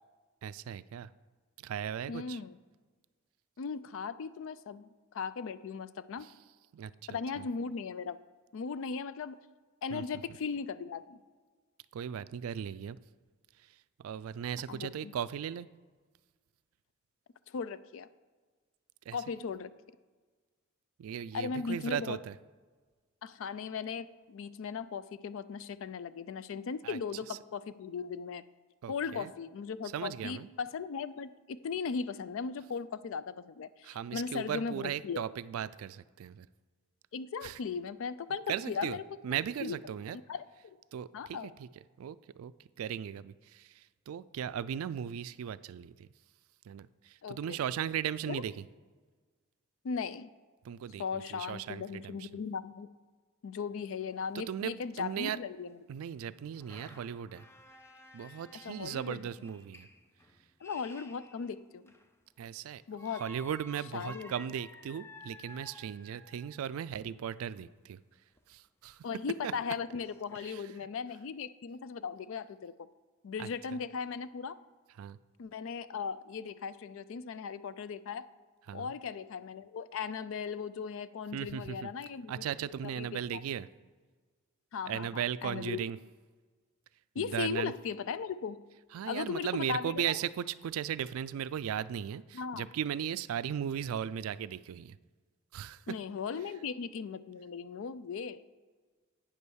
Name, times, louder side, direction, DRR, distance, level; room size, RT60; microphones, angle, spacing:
voice 1, 0.4-1.1 1.6-2.4 6.2-6.3 6.7-7.5 9.9-10.0 11.9-13.0 14.0-15.7 19.1-19.2 21.0-22.3 26.8-27.0 27.3-27.4 28.8-29.3 29.9-30.5 33.8-36.5 37.4-37.6 38.5-39.0 39.2-40.2 40.9-41.7 42.0-42.5 42.8-46.1 46.7-48.6 50.6-52.4 54.3-55.4 55.9-57.5 58.1-59.9 62.4-62.8 63.1-68.0 68.5-69.0 69.4-69.5 70.4-70.6 73.4-73.5 75.0-75.2 78.7-78.9 81.3-81.9 82.3-83.7 84.9-86.0 87.2-87.7 88.9-95.0 95.5-95.8, right 9 dB, 75° right, 16 dB, 0.3 m, -37 dB
voice 2, 2.1-2.6 3.6-6.3 7.1-8.2 8.5-9.4 9.8-11.2 14.7-15.1 17.5-18.1 19.1-19.7 21.3-22.2 23.2-28.4 28.9-35.2 37.1-39.0 39.6-39.8 40.3-40.8 41.1-41.5 47.2-47.6 48.3-48.4 49.8-50.3 51.0-52.9 53.4-55.8 58.6-59.3 60.6-61.9 62.9-63.2 63.9-64.3 69.0-72.7 73.2-74.6 75.4-78.3 78.7-82.5 83.0-83.4 84.7-85.8 87.2-88.6 89.0-90.1 92.3-92.7 95.9-98.4, left 5 dB, 65° left, 15 dB, 0.4 m, -38 dB
sound 1, 53.7-53.8 54.0-54.1 54.7-54.8 56.1-62.2 63.0-66.6 68.4-68.5 68.9-69.0 69.4-70.5, left 1 dB, 10° left, 0.5 m, -54 dB
8.7 x 5.4 x 6.3 m, 1.4 s
head